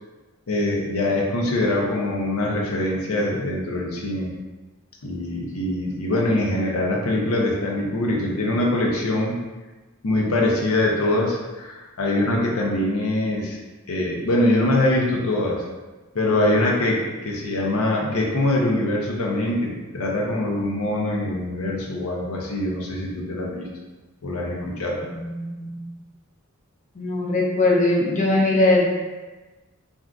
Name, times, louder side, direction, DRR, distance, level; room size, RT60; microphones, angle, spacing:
voice 1, 0.5-4.3 5.0-9.4 10.0-13.6 13.9-15.6 16.1-23.7 24.2-25.0, left 1 dB, 90° left, -2 dB, 0.6 m, -23 dB
voice 2, 25.1-25.9 27.0-28.9, left 2 dB, 35° left, -3 dB, 0.5 m, -21 dB
2.6 x 2.4 x 3.4 m, 1.2 s
head